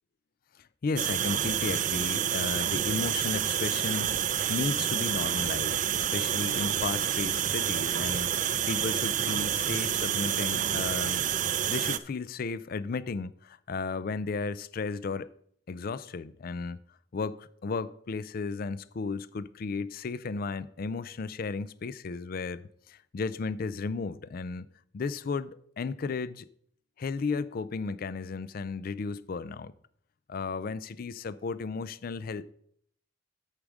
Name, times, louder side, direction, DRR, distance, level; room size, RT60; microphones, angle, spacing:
voice 1, 0.6-11.2 11.7-15.3 15.7-16.8 17.1-24.7 24.9-26.5 27.0-29.7 30.3-32.5, left 4 dB, 50° left, 0.4 m, -34 dB
sound 1, 1.0-12.0, right 10 dB, 40° right, 0.4 m, -28 dB
8.4 x 4.9 x 6.3 m
head